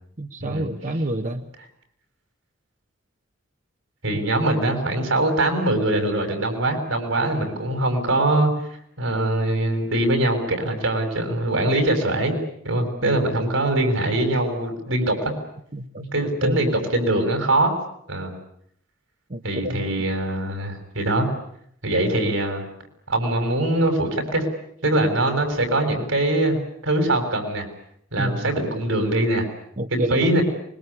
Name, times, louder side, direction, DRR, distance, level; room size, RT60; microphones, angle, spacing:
voice 1, 0.2-1.4 13.0-13.2 15.7-16.0 16.4-16.6 19.3-19.8 28.2-28.5 29.8-30.3, right 1 dB, 40° right, 6 dB, 1.3 m, -28 dB
voice 2, 4.0-8.5 9.0-12.4 12.6-15.3 16.1-17.7 18.1-18.3 19.4-21.3 21.8-22.6 23.1-24.4 24.8-27.7 28.1-29.5 29.9-30.4, right 1 dB, 85° right, 6 dB, 6.7 m, -22 dB
25.0 x 22.0 x 9.9 m, 0.70 s
head